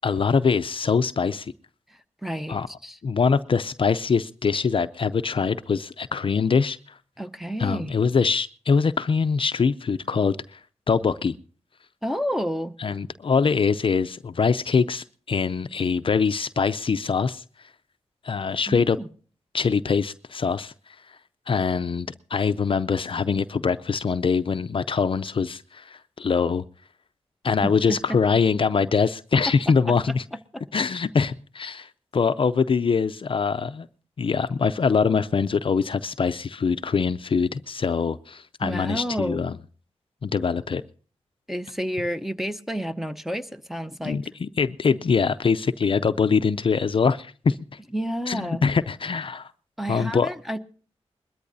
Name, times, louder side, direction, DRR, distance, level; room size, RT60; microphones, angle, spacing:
voice 1, 0.0-1.5 2.5-2.7 3.0-6.8 7.6-10.6 10.9-11.4 12.8-17.4 18.2-19.0 19.5-20.7 21.5-26.6 27.4-30.2 30.7-33.9 34.2-39.6 40.2-40.8 44.0-47.6 48.3-49.5 49.9-50.3, left 5 dB, 50° left, 0.5 m, -23 dB
voice 2, 1.9-3.0 7.2-7.9 12.0-12.8 18.7-19.1 27.6-28.2 29.7-29.9 30.5-30.6 38.6-39.4 41.5-44.2 47.9-48.6 49.8-50.6, equal, ahead, 0.8 m, -30 dB
21.5 x 13.5 x 2.7 m
cardioid pair, 60°, 11 cm